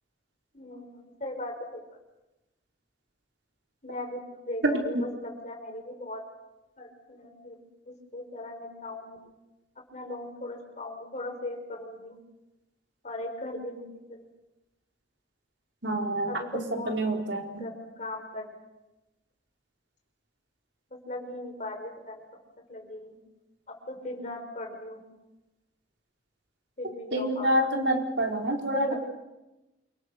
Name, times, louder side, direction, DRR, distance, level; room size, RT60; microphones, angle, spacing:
voice 1, 0.5-1.8 3.8-6.2 6.8-9.3 9.9-12.2 13.0-14.3 16.3-16.9 17.6-18.6 20.9-22.3 22.7-23.2 23.7-25.0 26.8-27.7 28.7-29.0, left 1 dB, 40° left, 3 dB, 5.7 m, -38 dB
voice 2, 15.8-17.7 27.1-29.0, right 1 dB, 75° right, 1 dB, 4.5 m, -27 dB
28.0 x 25.5 x 6.7 m, 1.0 s
head